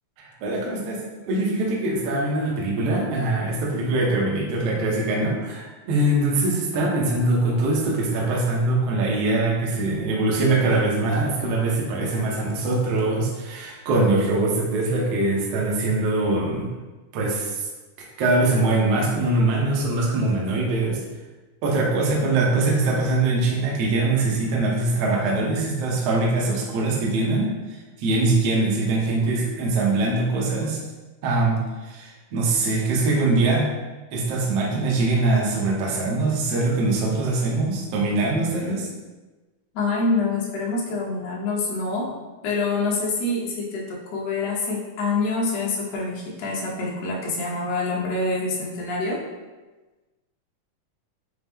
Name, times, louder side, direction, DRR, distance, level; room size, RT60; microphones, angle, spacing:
voice 1, 0.2-1.0 1.2-16.7 17.1-17.7 18.2-21.0 21.6-27.5 28.0-30.8 31.2-33.7 34.1-38.9, right 2 dB, 70° right, -3 dB, 1.5 m, -22 dB
voice 2, 39.7-42.1 42.4-49.2, left 3 dB, 70° left, -3 dB, 1.7 m, -26 dB
5.8 x 2.0 x 3.5 m, 1.2 s
omnidirectional pair, 3.7 m